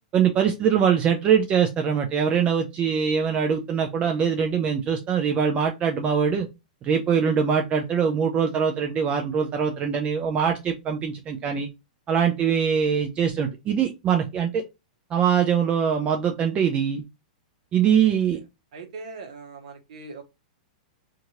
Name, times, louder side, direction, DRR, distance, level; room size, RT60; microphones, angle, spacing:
voice 1, 0.1-6.5 6.8-11.7 12.1-14.6 15.1-17.0 17.7-18.4, right 7 dB, 25° right, 3 dB, 0.5 m, -23 dB
voice 2, 18.7-20.2, right 4 dB, 65° right, 5 dB, 0.9 m, -40 dB
2.8 x 2.5 x 2.7 m, 0.24 s
hypercardioid pair, 120°, 4 cm